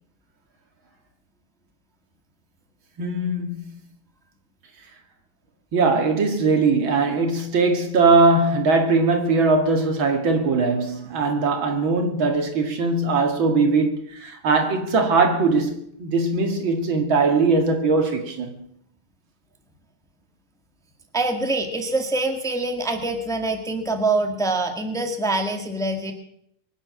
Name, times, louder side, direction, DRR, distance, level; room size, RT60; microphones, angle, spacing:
voice 1, 3.0-3.7 5.7-18.6, right 3 dB, 65° right, 2.7 m, -20 dB
voice 2, 21.1-26.1, right 2 dB, ahead, 1.7 m, -25 dB
23.5 x 9.6 x 6.3 m
omnidirectional pair, 2.3 m